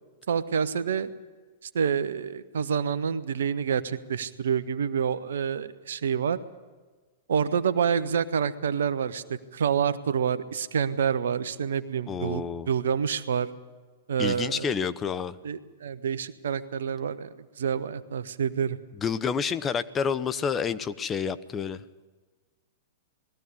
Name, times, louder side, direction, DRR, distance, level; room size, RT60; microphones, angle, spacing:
voice 1, 0.3-1.1 1.7-6.4 7.3-13.5 14.1-14.7 15.4-18.8, right 7 dB, 75° right, 14 dB, 0.9 m, -28 dB
voice 2, 12.1-12.7 14.2-15.4 19.0-21.8, left 6 dB, 25° left, 13 dB, 0.8 m, -29 dB
20.0 x 14.0 x 9.7 m, 1.3 s
hypercardioid pair, 105°, 0 cm